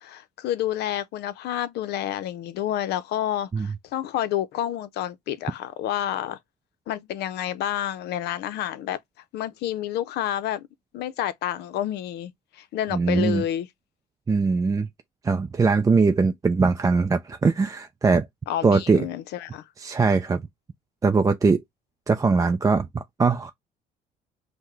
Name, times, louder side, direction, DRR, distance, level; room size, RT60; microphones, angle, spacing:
voice 1, 0.0-6.4 6.9-9.0 9.3-10.7 10.9-13.7 18.5-19.6, left 11 dB, 75° left, 0.6 m, -29 dB
voice 2, 12.9-13.4 14.3-14.9 15.2-18.3 18.6-19.1 19.8-20.4 21.0-21.6 22.1-23.5, right 4 dB, 20° right, 0.4 m, -21 dB
5.6 x 2.1 x 3.1 m
cardioid pair, 110°, 17 cm